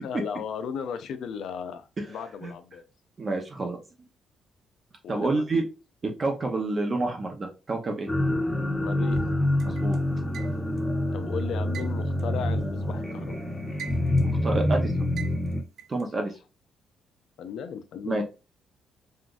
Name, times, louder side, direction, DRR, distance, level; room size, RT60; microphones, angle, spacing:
voice 1, 0.0-2.8 5.0-5.4 8.8-9.2 11.1-13.4 16.2-16.3 17.4-18.2, left 7 dB, 75° left, 9 dB, 0.5 m, -36 dB
voice 2, 3.2-3.8 5.1-5.6 6.0-8.1 9.6-10.0 14.4-14.9 15.9-16.3 18.0-18.2, right 2 dB, 35° right, 2 dB, 0.7 m, -28 dB
sound 1, 8.1-15.6, left 1 dB, 15° left, 0.8 m, -26 dB
sound 2, 9.6-10.9 11.7-13.1 13.5-14.4 15.2-16.0, right 8 dB, 70° right, 0.4 m, -42 dB
3.7 x 2.4 x 2.3 m, 0.29 s
cardioid pair, 90°, 0 cm